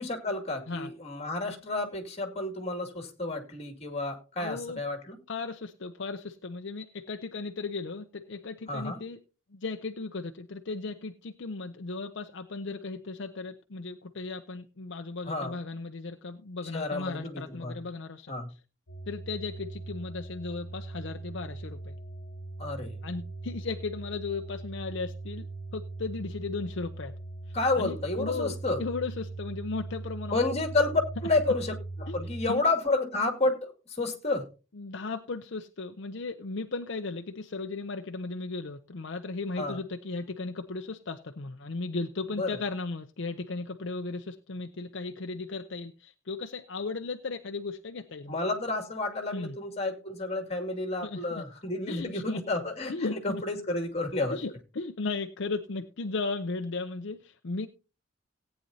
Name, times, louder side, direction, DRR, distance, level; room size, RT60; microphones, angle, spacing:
voice 1, 0.0-5.2 8.7-9.0 15.2-15.6 16.7-17.8 18.3-18.5 22.6-22.9 27.5-28.8 30.3-34.5 39.6-39.8 42.4-42.5 48.3-54.4, left 2 dB, 30° left, 5 dB, 2.4 m, -30 dB
voice 2, 4.4-4.8 5.3-9.2 9.5-18.3 19.1-21.9 23.0-25.5 25.7-27.1 27.5-30.4 32.1-32.2 32.5-32.6 34.7-48.4 49.3-49.6 51.0-51.4 51.9-52.4 52.9-53.4 54.3-57.7, left 3 dB, 60° left, 6 dB, 0.7 m, -36 dB
sound 1, 18.9-32.5, right 2 dB, 80° left, 1.2 m, -40 dB
18.0 x 9.1 x 2.8 m, 0.32 s
head